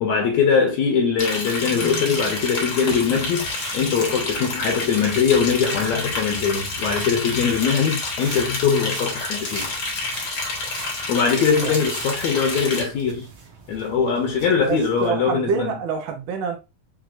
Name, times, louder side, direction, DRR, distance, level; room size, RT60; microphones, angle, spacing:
voice 1, 0.0-3.5 3.7-9.7 11.1-13.3 13.7-15.7, left 6 dB, 70° left, 1.9 m, -21 dB
Liquid, 1.2-12.8, left 3 dB, 55° left, 1.1 m, -29 dB
sound 1, 2.9-15.1, right 4 dB, 60° right, 1.9 m, -42 dB
voice 2, 14.7-16.6, right 6 dB, 75° right, 1.2 m, -26 dB
6.0 x 2.7 x 2.6 m
omnidirectional pair, 3.6 m